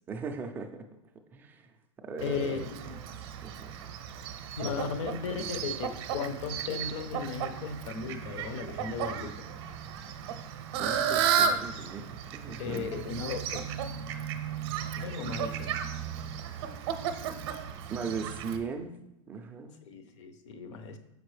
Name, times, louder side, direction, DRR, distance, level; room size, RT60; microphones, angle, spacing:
voice 1, 0.1-0.9 1.3-1.6 2.0-2.5 3.4-3.5 10.8-12.9 17.9-18.9 19.3-19.7, right 5 dB, 10° right, 5 dB, 0.3 m, -38 dB
voice 2, 2.2-3.0 4.6-9.3 12.5-13.4 15.0-15.8 19.9-21.0, left 5 dB, 60° left, 8 dB, 0.7 m, -35 dB
Fowl, 2.2-18.6, right 8 dB, 50° right, 0.6 m, -34 dB
6.2 x 5.2 x 3.2 m, 0.87 s
supercardioid pair, 160°, 17 cm